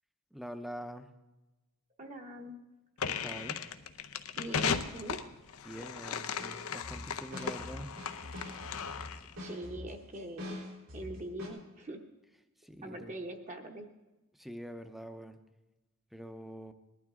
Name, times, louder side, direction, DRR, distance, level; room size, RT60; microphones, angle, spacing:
voice 1, 0.3-1.1 3.0-3.6 5.6-8.0 12.6-13.1 14.3-15.4 16.1-16.7, equal, ahead, 8 dB, 0.6 m, -45 dB
voice 2, 2.0-2.6 4.4-5.2 9.4-10.6 10.9-12.0 12.8-13.9, right 1 dB, 35° right, 3 dB, 1.0 m, -43 dB
sound 1, 3.0-9.3, left 6 dB, 90° left, 0.7 m, -37 dB
sound 2, 6.4-11.5, left 1 dB, 90° right, 4.5 m, -45 dB
19.0 x 12.0 x 3.7 m, 1.1 s
head